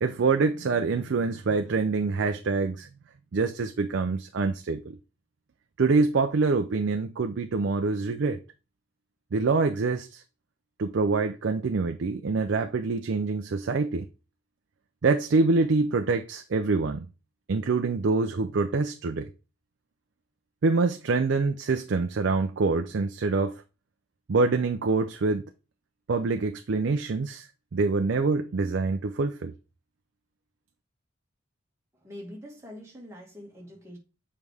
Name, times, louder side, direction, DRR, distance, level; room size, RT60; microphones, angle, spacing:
voice 1, 0.0-2.9 3.3-5.0 5.8-8.4 9.3-10.2 10.8-14.1 15.0-17.1 17.5-19.3 20.6-23.6 24.3-25.5 26.1-29.5, right 4 dB, 55° right, 0.4 m, -25 dB
voice 2, 31.9-34.0, left 1 dB, 15° right, 1.8 m, -44 dB
7.3 x 4.6 x 3.4 m
head